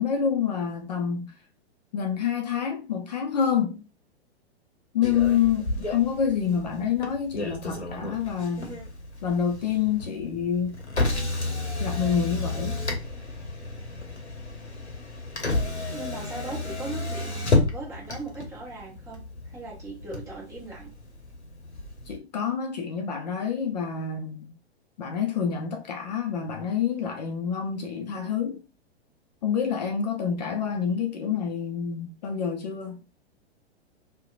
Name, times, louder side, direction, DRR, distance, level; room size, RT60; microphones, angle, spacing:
voice 1, 0.0-1.3 1.9-3.8 4.9-8.8 9.2-10.8 11.8-12.7 22.1-24.6 25.0-28.6 29.4-33.0, left 7 dB, 40° left, 0.5 m, -27 dB
Motor vehicle (road), 5.0-22.2, left 2 dB, 85° left, 0.8 m, -32 dB
voice 2, 15.9-20.9, right 2 dB, 10° right, 0.8 m, -39 dB
2.7 x 2.1 x 2.4 m
figure-of-eight pair, 105°, 33 cm